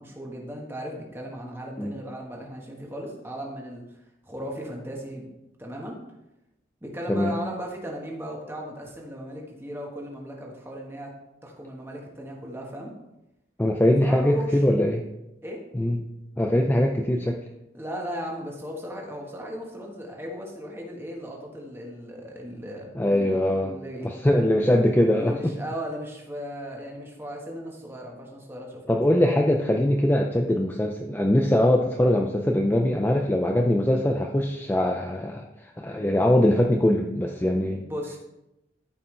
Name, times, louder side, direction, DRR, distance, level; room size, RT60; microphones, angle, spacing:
voice 1, 0.0-3.8 4.2-5.3 5.6-6.0 6.8-11.1 11.4-12.9 14.0-14.6 15.4-15.6 17.7-23.3 23.6-24.4 25.2-28.8 37.8-38.2, equal, 10° right, -1 dB, 1.4 m, -36 dB
voice 2, 13.6-15.1 15.7-16.1 16.4-17.4 22.9-23.8 24.0-25.6 28.9-37.8, left 1 dB, 10° left, 2 dB, 0.4 m, -22 dB
13.5 x 5.5 x 3.3 m, 0.93 s
head